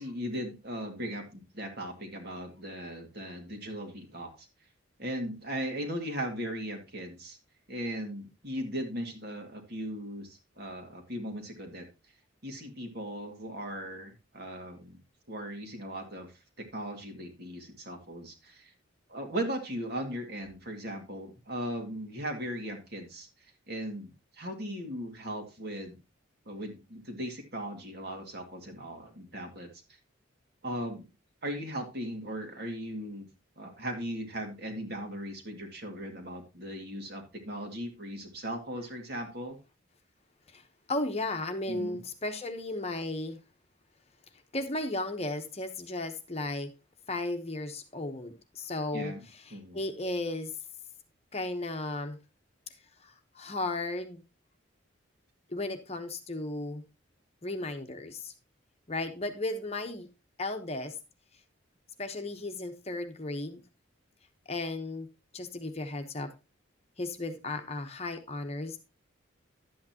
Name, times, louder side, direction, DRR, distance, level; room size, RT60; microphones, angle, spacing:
voice 1, 0.0-4.5 5.0-7.4 7.7-11.9 12.4-15.0 15.3-18.7 19.1-24.1 24.4-26.0 26.5-29.7 30.6-31.1 31.4-33.3 33.6-39.6 41.7-42.0 48.9-49.2 49.5-49.8, equal, 50° right, 4 dB, 2.2 m, -38 dB
voice 2, 40.9-43.4 44.5-46.7 47.1-50.5 51.3-52.2 53.0-54.2 55.5-56.8 57.4-58.3 58.9-60.1 60.4-60.9 62.0-63.6 64.5-65.1 65.3-66.3 67.0-68.8, left 2 dB, 30° left, 6 dB, 1.0 m, -35 dB
11.5 x 8.6 x 2.9 m, 0.26 s
head